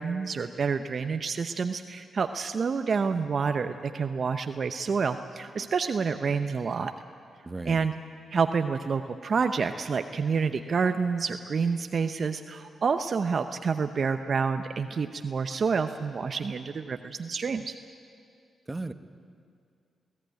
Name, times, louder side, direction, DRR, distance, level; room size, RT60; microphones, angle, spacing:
voice 1, 0.0-6.9 7.7-7.9 8.3-17.7, right 5 dB, 55° right, 8 dB, 0.8 m, -28 dB
voice 2, 7.4-7.8 18.7-18.9, right 2 dB, 25° right, 9 dB, 1.2 m, -35 dB
20.5 x 15.5 x 9.4 m, 2.3 s
supercardioid pair, 45°, 0 cm